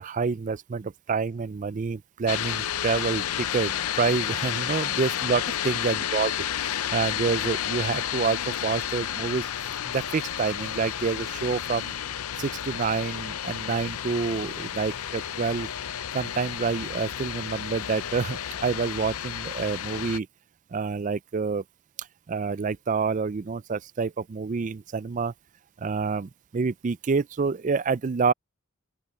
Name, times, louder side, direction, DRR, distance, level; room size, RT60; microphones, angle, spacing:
voice 1, 0.0-6.3 6.6-9.5 9.9-11.9 12.4-15.7 16.1-20.3 20.7-21.6 22.0-25.3 25.8-28.3, right 5 dB, 35° right, 0.4 m, -28 dB
sound 1, 2.3-20.2, left 10 dB, 80° left, 0.6 m, -31 dB
open air
head